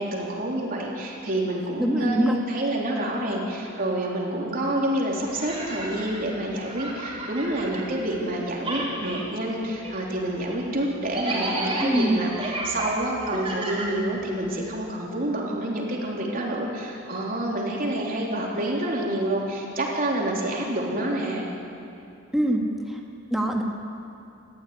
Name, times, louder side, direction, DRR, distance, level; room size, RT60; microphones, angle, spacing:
voice 1, 0.0-21.5, right 1 dB, 45° right, -3 dB, 3.8 m, -28 dB
voice 2, 1.8-2.4 11.8-12.2 22.3-23.0 23.3-23.6, right 1 dB, ahead, -1 dB, 2.1 m, -23 dB
sound 1, 5.2-8.3 8.6-14.6, right 2 dB, 25° right, 5.1 m, -33 dB
28.5 x 14.5 x 9.7 m, 2.6 s
head